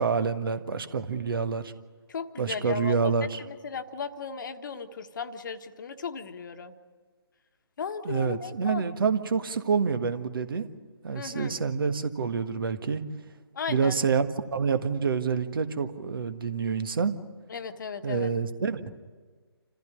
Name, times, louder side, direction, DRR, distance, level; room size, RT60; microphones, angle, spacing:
voice 1, 0.0-1.7 2.4-3.4 8.0-10.7 11.0-13.0 13.7-17.1 18.0-18.8, right 5 dB, 55° right, 9 dB, 1.6 m, -27 dB
voice 2, 2.1-3.0 3.2-6.7 7.8-8.8 11.1-11.6 13.5-13.9 17.5-18.3, left 6 dB, 50° left, 8 dB, 1.4 m, -36 dB
27.5 x 15.0 x 9.8 m, 1.5 s
figure-of-eight pair, 150°, 14 cm